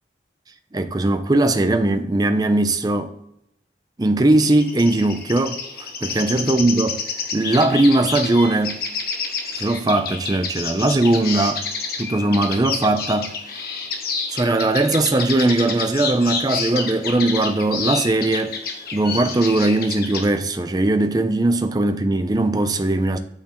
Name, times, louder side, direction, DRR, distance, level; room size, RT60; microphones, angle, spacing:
voice 1, 0.7-3.2 4.0-7.0 7.3-8.8 9.6-11.6 12.0-13.6 14.3-18.6 18.9-23.2, right 2 dB, 20° right, 0.5 m, -19 dB
sound 1, 4.3-20.3, left 5 dB, 55° left, 1.1 m, -29 dB
8.6 x 6.5 x 3.0 m
head